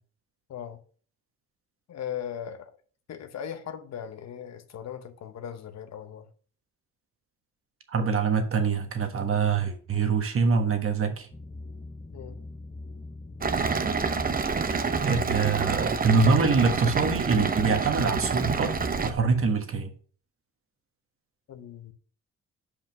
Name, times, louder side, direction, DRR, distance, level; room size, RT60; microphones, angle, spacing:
voice 1, 0.5-0.8 1.9-2.8 3.1-6.3 12.1-12.4 21.5-21.9, left 9 dB, 60° left, 0.9 m, -38 dB
voice 2, 7.9-11.3 14.7-19.9, right 5 dB, 45° right, 1.4 m, -25 dB
sound 1, 11.3-19.5, left 2 dB, 20° left, 0.9 m, -42 dB
sound 2, 13.4-19.1, right 5 dB, 30° right, 0.8 m, -28 dB
5.6 x 5.1 x 5.2 m
cardioid pair, 90°, 30 cm